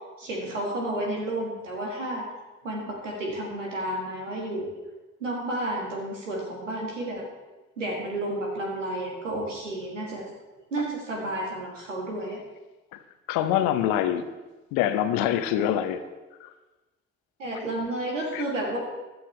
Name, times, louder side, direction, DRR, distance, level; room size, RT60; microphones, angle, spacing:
voice 1, 0.2-2.3 2.6-4.7 5.2-7.3 7.8-10.3 10.7-12.4 17.4-18.8, right 1 dB, 90° right, -1 dB, 1.8 m, -31 dB
voice 2, 13.3-14.2 14.7-16.0 16.4-16.5 18.3-18.4, left 11 dB, 70° left, 10 dB, 0.9 m, -25 dB
16.0 x 11.5 x 3.3 m, 1.2 s
figure-of-eight pair, 40°, 36 cm